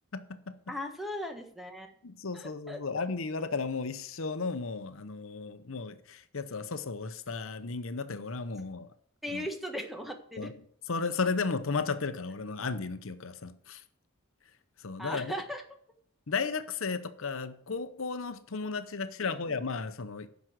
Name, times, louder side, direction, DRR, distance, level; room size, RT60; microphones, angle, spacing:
voice 1, 0.1-0.5 2.0-8.9 9.3-9.4 10.4-10.5 10.9-13.8 14.8-15.3 16.3-20.3, left 4 dB, 65° left, 0.8 m, -34 dB
voice 2, 0.7-1.9 2.3-3.1 9.2-10.5 15.0-15.6 19.2-19.6, equal, ahead, 1.4 m, -38 dB
10.5 x 6.2 x 7.9 m
head